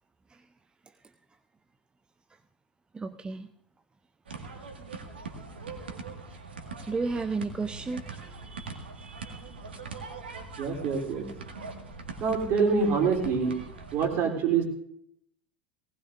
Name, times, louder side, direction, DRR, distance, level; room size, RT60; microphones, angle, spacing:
voice 1, 2.9-3.5 6.9-9.6, right 4 dB, 15° right, 10 dB, 0.6 m, -34 dB
sound 1, 4.3-14.1, right 4 dB, 75° right, 1.8 m, -42 dB
voice 2, 10.6-11.2 12.2-13.5 13.9-14.6, right 5 dB, 45° right, 2 dB, 3.4 m, -25 dB
19.5 x 18.5 x 2.6 m, 0.71 s
figure-of-eight pair, 80°, 6 cm